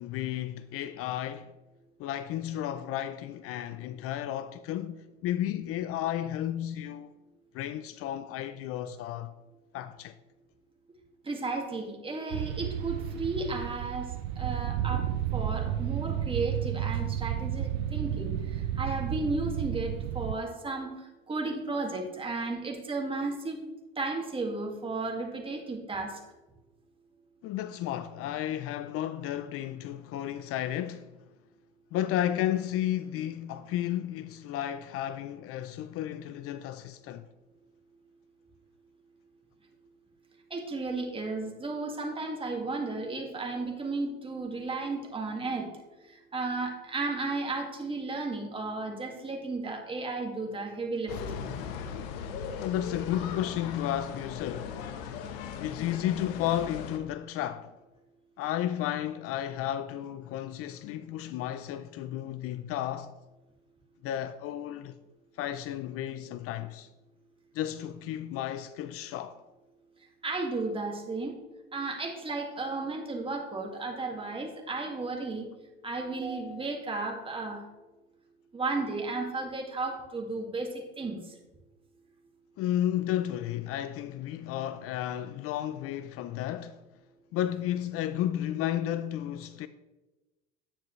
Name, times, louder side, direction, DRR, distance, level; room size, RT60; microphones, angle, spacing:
voice 1, 0.0-1.5 2.0-7.1 7.5-9.3 9.7-10.2 27.4-31.1 31.9-37.2 52.6-54.8 55.6-57.8 58.4-63.1 64.0-65.0 65.4-66.9 67.5-69.4 82.6-86.8 87.3-89.7, left 12 dB, 50° left, 0.5 m, -33 dB
voice 2, 11.2-14.1 14.4-15.1 15.3-18.4 18.8-20.9 21.3-23.6 24.0-26.2 40.5-45.7 46.3-51.4 70.2-71.3 71.7-75.5 75.8-77.6 78.5-81.2, right 3 dB, 20° right, 2.1 m, -34 dB
sound 1, 12.3-20.3, right 11 dB, 90° right, 0.5 m, -32 dB
sound 2, 51.1-57.0, left 6 dB, 75° left, 1.0 m, -38 dB
10.0 x 9.1 x 3.2 m
supercardioid pair, 100°, 29 cm